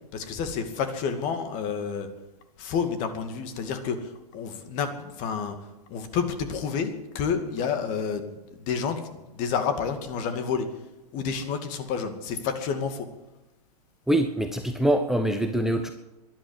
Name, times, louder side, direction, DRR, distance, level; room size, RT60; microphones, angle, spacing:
voice 1, 0.1-2.1 2.6-5.6 5.9-10.7 11.1-13.1, left 6 dB, 40° left, 7 dB, 2.4 m, -29 dB
voice 2, 14.1-15.9, right 1 dB, ahead, 6 dB, 0.9 m, -24 dB
12.5 x 11.5 x 10.0 m, 0.98 s
hypercardioid pair, 120°, 20 cm